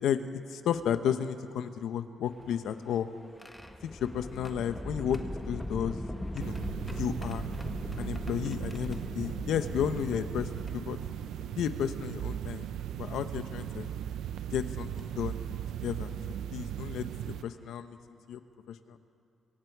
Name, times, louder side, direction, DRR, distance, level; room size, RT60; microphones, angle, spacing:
voice 1, 0.0-3.1 3.8-5.2 5.4-6.0 6.3-6.6 7.0-7.4 8.0-10.5 10.9-11.0 11.6-12.6 13.0-13.9 14.5-15.4 15.8-16.1 16.5-18.0 18.3-18.4 18.7-19.0, left 9 dB, 85° left, 10 dB, 1.0 m, -32 dB
sound 1, 2.3-11.6 12.5-12.6 14.0-14.2 15.0-15.2 16.8-16.9 17.3-17.5, left 1 dB, 5° left, 1.4 m, -40 dB
sound 2, 6.4-17.4, right 10 dB, 90° right, 0.6 m, -38 dB
25.0 x 24.5 x 4.8 m, 2.5 s
cardioid pair, 120°, 0 cm